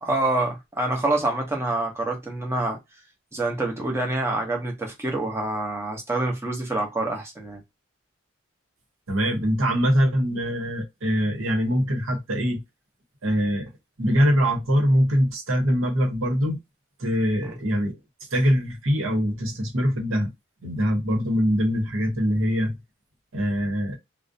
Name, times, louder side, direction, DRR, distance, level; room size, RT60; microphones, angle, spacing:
voice 1, 0.0-2.8 3.3-7.6 17.4-17.6, right 2 dB, 15° right, 0.7 m, -26 dB
voice 2, 9.1-12.6 13.2-13.7 14.0-16.6 17.0-18.0 18.3-20.3 20.6-22.8 23.3-24.0, equal, 80° right, 0.9 m, -23 dB
2.5 x 2.0 x 2.5 m
head